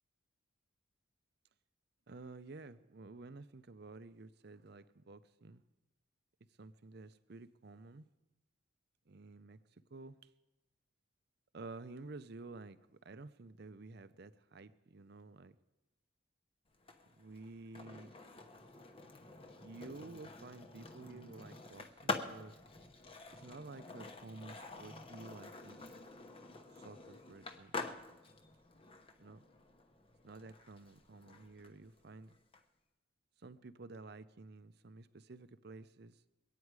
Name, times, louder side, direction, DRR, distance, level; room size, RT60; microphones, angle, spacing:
voice 1, 2.1-5.6 6.6-8.1 9.1-9.6 9.9-10.3 11.5-15.5 17.0-18.1 19.6-22.6 23.3-25.9 26.7-28.0 29.2-29.4 30.2-32.4 33.4-36.2, right 3 dB, 50° right, 0.6 m, -52 dB
Skateboard, 16.7-32.6, left 3 dB, 25° left, 1.0 m, -47 dB
23.5 x 9.2 x 4.8 m
head